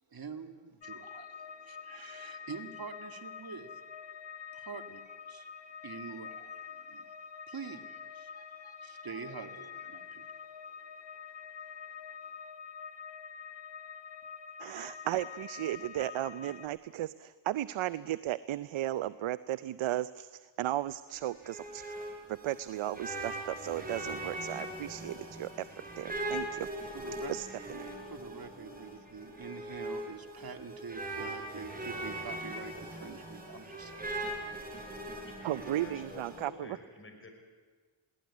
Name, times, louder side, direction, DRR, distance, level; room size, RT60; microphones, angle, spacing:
voice 1, 0.1-4.3 4.5-11.3 11.8-11.9 12.4-12.5 26.9-27.3 28.1-34.0 34.4-34.8, right 5 dB, 50° right, 7 dB, 2.2 m, -46 dB
sound 1, 0.8-16.7, left 6 dB, 65° left, 1.3 m, -46 dB
voice 2, 14.6-21.8 22.3-25.7 26.0-26.7 27.3-27.9 35.4-36.8, right 13 dB, 80° right, 16 dB, 0.6 m, -35 dB
sound 2, 21.1-36.4, right 1 dB, 20° right, 6.1 m, -41 dB
voice 3, 35.3-37.3, left 2 dB, 25° left, 4 dB, 5.5 m, -50 dB
21.0 x 17.5 x 9.6 m, 1.4 s
cardioid pair, 75°, 47 cm